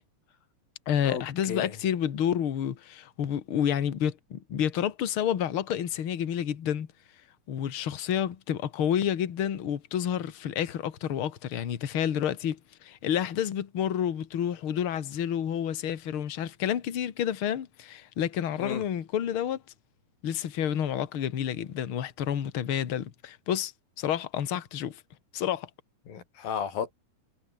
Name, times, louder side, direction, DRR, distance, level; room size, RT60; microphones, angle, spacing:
voice 1, 0.9-6.9 7.5-19.6 20.2-23.7 24.0-25.0 25.3-25.7, left 9 dB, 45° left, 1.8 m, -29 dB
voice 2, 26.1-26.9, left 7 dB, 65° left, 5.1 m, -33 dB
omnidirectional pair, 4.6 m